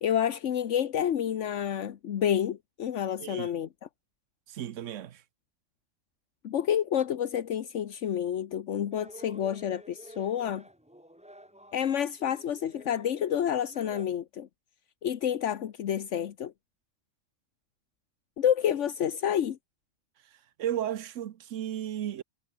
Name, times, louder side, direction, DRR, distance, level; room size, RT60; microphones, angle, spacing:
voice 1, 0.0-3.7 6.4-10.6 11.7-14.5 15.0-16.5 18.4-19.6, left 9 dB, 75° left, 1.2 m, -29 dB
voice 2, 4.5-5.2 20.6-22.2, right 11 dB, 80° right, 1.2 m, -34 dB
sound 1, 8.9-14.1, equal, 5° right, 2.1 m, -51 dB
omnidirectional pair, 1.3 m